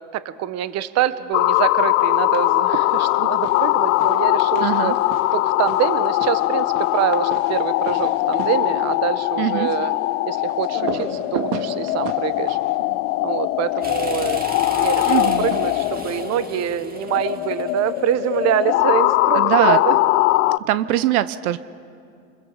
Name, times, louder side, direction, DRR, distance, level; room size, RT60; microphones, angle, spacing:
voice 1, 0.1-4.9 5.3-9.9 10.2-12.6 13.2-20.0, right 11 dB, 35° right, 14 dB, 1.1 m, -25 dB
sound 1, 1.3-20.6, left 19 dB, 70° left, 0.6 m, -21 dB
sound 2, 2.0-2.6 2.9-13.9 15.1-16.3, right 8 dB, 55° right, 2.2 m, -36 dB
voice 2, 4.6-5.0 9.4-9.7 15.1-15.5 19.3-19.8 20.6-21.6, right 14 dB, 75° right, 15 dB, 0.9 m, -22 dB
sound 3, 13.8-18.7, right 3 dB, 20° right, 2.2 m, -36 dB
29.0 x 22.0 x 7.3 m, 2.4 s
supercardioid pair, 115°, 44 cm